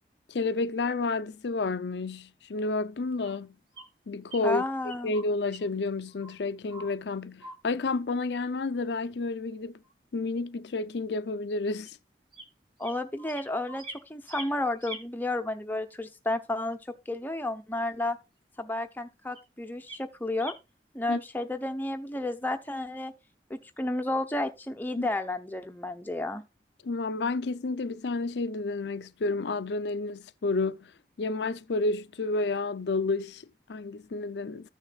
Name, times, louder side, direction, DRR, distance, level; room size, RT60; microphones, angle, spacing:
voice 1, 0.3-3.6 4.1-4.6 5.0-9.8 10.1-12.0 21.1-21.2 25.0-25.1 26.8-30.9 31.2-34.7, left 3 dB, 80° left, 0.5 m, -30 dB
sound 1, 3.2-3.4 3.7-3.9 4.3-4.6 4.9-5.7 6.1-6.4 6.7-7.0 7.4-7.6 7.9-8.0 9.8-9.9 11.9-12.0 12.3-12.4 12.8-14.0 14.3-15.0 17.8-17.9 19.3-19.4 19.9-20.0 20.4-20.5, right 1 dB, 30° right, 2.0 m, -44 dB
voice 2, 4.4-5.1 12.8-13.8 14.1-18.2 18.6-20.5 20.9-23.1 23.5-26.4, left 2 dB, 10° left, 0.7 m, -32 dB
14.5 x 6.4 x 2.3 m
head